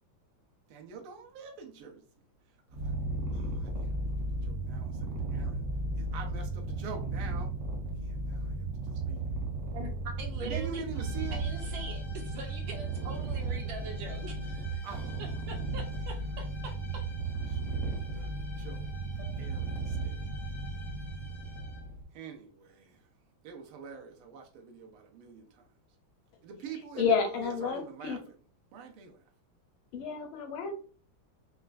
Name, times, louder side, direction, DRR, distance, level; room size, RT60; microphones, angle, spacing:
voice 1, 0.7-2.0 2.7-2.9 3.3-5.7 5.9-7.5 8.0-9.3 10.4-11.4 14.8-15.4 17.5-18.9 19.4-20.2 22.1-23.1 23.4-25.7 26.4-28.2 28.7-29.2, right 6 dB, 90° right, 2 dB, 1.6 m, -45 dB
Purr, 2.7-22.0, right 2 dB, 50° right, 0.7 m, -35 dB
voice 2, 9.7-10.8 11.3-14.8 15.2-17.0 19.2-19.3, right 3 dB, 75° right, 3 dB, 1.4 m, -43 dB
sound 1, 10.9-22.0, left 2 dB, 30° left, 0.5 m, -52 dB
voice 3, 27.0-28.2 29.9-30.7, left 6 dB, 80° left, 3 dB, 1.6 m, -30 dB
4.3 x 2.2 x 2.4 m, 0.41 s
omnidirectional pair, 2.3 m